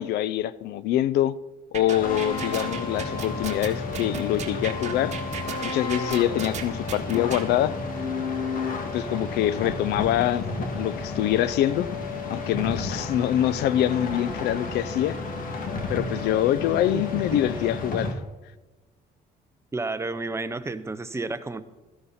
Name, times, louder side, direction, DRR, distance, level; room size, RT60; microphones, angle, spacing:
voice 1, 0.0-1.4 1.7-5.2 5.6-7.8 8.9-10.4 10.7-11.9 12.3-15.2 15.9-18.2, left 12 dB, 75° left, 0.5 m, -25 dB
sound 1, 1.7-7.4, right 7 dB, 45° right, 1.7 m, -35 dB
sound 2, 1.9-18.1, left 3 dB, 55° left, 2.2 m, -32 dB
voice 2, 19.7-21.6, right 3 dB, 15° right, 0.8 m, -31 dB
13.5 x 11.0 x 4.2 m
cardioid pair, 110°, 17 cm